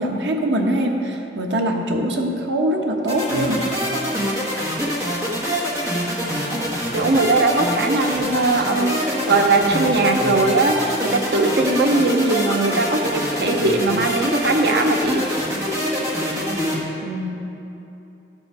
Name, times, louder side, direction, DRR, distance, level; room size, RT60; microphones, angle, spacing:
voice 1, 0.0-3.7 17.0-17.4, right 1 dB, 85° right, 2 dB, 1.0 m, -23 dB
sound 1, 3.1-16.8, equal, 20° right, 1.2 m, -25 dB
voice 2, 6.9-15.2, right 2 dB, 70° right, 4 dB, 0.8 m, -20 dB
11.5 x 5.4 x 4.7 m, 2.9 s
head